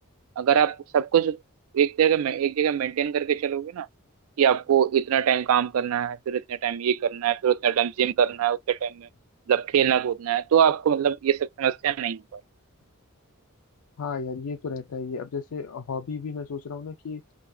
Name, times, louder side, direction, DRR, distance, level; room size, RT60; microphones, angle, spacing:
voice 1, 0.4-1.4 1.7-3.9 4.4-9.1 9.5-12.4, right 8 dB, 75° right, 0.3 m, -23 dB
voice 2, 14.0-17.2, left 5 dB, 80° left, 0.4 m, -33 dB
3.7 x 2.7 x 2.7 m
head